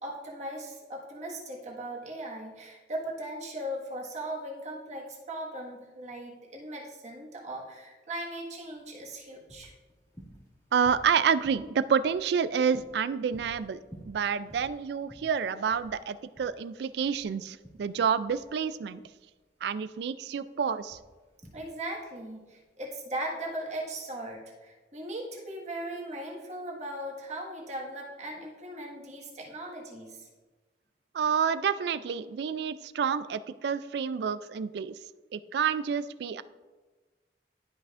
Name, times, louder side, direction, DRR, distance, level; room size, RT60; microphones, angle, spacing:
voice 1, 0.0-9.7 21.5-30.3, right 1 dB, 40° right, -3 dB, 1.6 m, -38 dB
sound 1, 8.6-24.3, equal, 20° left, 1.7 m, -54 dB
voice 2, 10.7-19.0 19.6-21.0 31.1-35.0 35.3-36.4, right 7 dB, 65° right, 15 dB, 0.3 m, -29 dB
12.0 x 5.5 x 2.5 m, 1.3 s
head